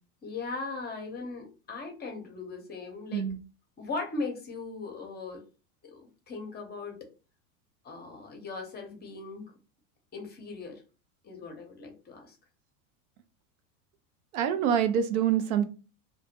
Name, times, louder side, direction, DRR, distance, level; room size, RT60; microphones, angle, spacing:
voice 1, 0.2-3.2 3.8-5.4 5.8-6.0 6.3-7.0 7.8-9.5 10.1-10.8 11.2-12.4, left 3 dB, 20° left, 3 dB, 0.7 m, -38 dB
voice 2, 14.3-15.7, right 8 dB, 75° right, 10 dB, 0.6 m, -25 dB
2.1 x 2.0 x 2.8 m, 0.34 s
hypercardioid pair, 105°, 43 cm